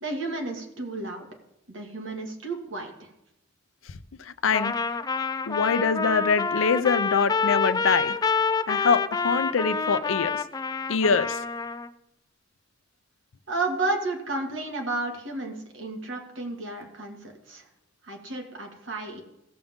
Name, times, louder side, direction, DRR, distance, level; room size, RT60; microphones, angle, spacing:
voice 1, 0.0-1.3 1.7-3.1 13.5-17.6 18.0-19.2, right 2 dB, 70° right, 2 dB, 2.1 m, -32 dB
voice 2, 4.3-4.7 5.5-8.2 8.7-10.3 10.9-11.4, left 5 dB, 90° left, 14 dB, 0.6 m, -24 dB
Trumpet, 4.5-11.9, left 5 dB, 20° left, 0.4 m, -27 dB
16.5 x 7.1 x 3.6 m, 0.85 s
head